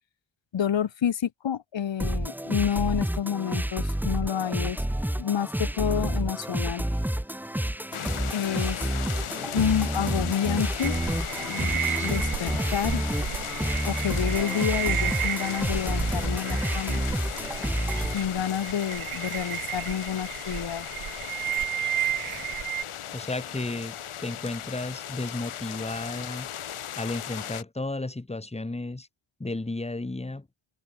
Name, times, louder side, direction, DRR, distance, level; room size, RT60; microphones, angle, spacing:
voice 1, 0.5-4.8 5.2-6.8 8.3-8.9 9.4-11.0 11.4-13.0 13.9-17.0 18.1-20.9, left 9 dB, 60° left, 5.5 m, -29 dB
sound 1, 2.0-18.1, right 1 dB, 5° right, 7.6 m, -29 dB
sound 2, 7.9-27.6, left 10 dB, 75° left, 7.3 m, -37 dB
sound 3, 10.8-22.8, right 11 dB, 80° right, 2.7 m, -33 dB
voice 2, 23.1-26.5 27.0-29.1 29.4-30.5, left 2 dB, 10° left, 8.0 m, -33 dB
wide cardioid pair, 175°, 50 cm